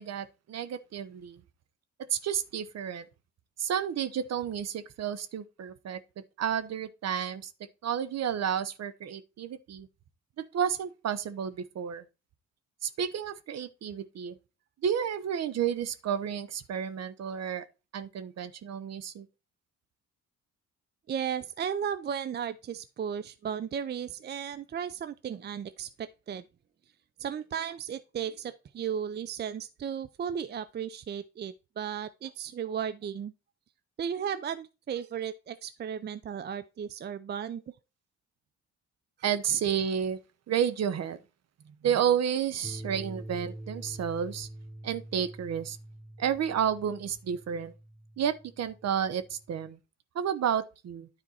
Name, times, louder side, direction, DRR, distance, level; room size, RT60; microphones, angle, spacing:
voice 1, 0.0-1.4 2.1-3.1 3.6-6.0 6.4-7.5 7.8-9.9 10.4-12.0 12.8-14.4 14.8-17.6 17.9-19.3 39.2-40.2 40.5-41.2 41.7-44.5 44.8-45.8 46.2-47.7 48.2-49.8 50.1-51.1, right 8 dB, 60° right, 0.9 m, -31 dB
voice 2, 21.1-26.4 27.2-33.3 34.0-37.6, right 8 dB, 35° right, 0.5 m, -35 dB
sound 1, 42.6-49.7, right 1 dB, 5° left, 0.7 m, -45 dB
9.7 x 4.4 x 4.2 m
cardioid pair, 90°, 30 cm